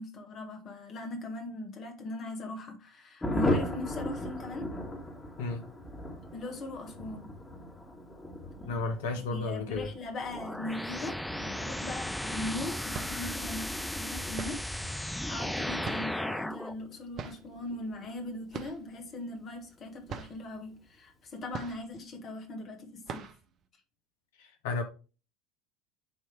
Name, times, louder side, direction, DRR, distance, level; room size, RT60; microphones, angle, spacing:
voice 1, 0.0-4.7 6.3-7.3 9.3-23.2, left 2 dB, 40° left, 1.5 m, -40 dB
Thunder, 3.2-19.3 19.6-19.7 20.0-20.1 20.4-20.8, left 1 dB, 20° left, 1.9 m, -39 dB
voice 2, 8.6-9.9 24.4-24.8, left 3 dB, 65° left, 1.2 m, -33 dB
sound 1, 10.3-16.7, left 1 dB, ahead, 0.4 m, -35 dB
sound 2, 12.9-13.4 14.3-14.8 15.8-16.3 17.1-17.5 18.5-18.9 19.2-19.3 19.7-19.8 20.1-20.5 21.5-22.1 22.5-22.6 23.0-23.5, right 6 dB, 45° right, 0.8 m, -41 dB
8.6 x 3.2 x 4.7 m
figure-of-eight pair, 70°, 0 cm